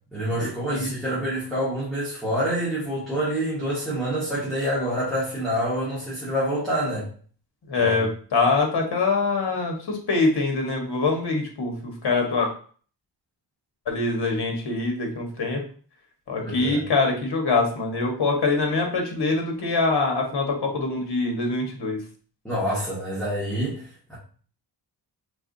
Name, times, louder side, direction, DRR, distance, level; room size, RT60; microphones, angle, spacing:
voice 1, 0.1-7.1 7.8-7.9 16.4-16.8 22.4-24.2, equal, ahead, -10 dB, 1.8 m, -27 dB
voice 2, 7.7-12.5 13.9-15.6 16.3-22.0, left 3 dB, 60° left, 2 dB, 1.4 m, -24 dB
4.7 x 3.6 x 2.7 m, 0.43 s
wide cardioid pair, 115°, 43 cm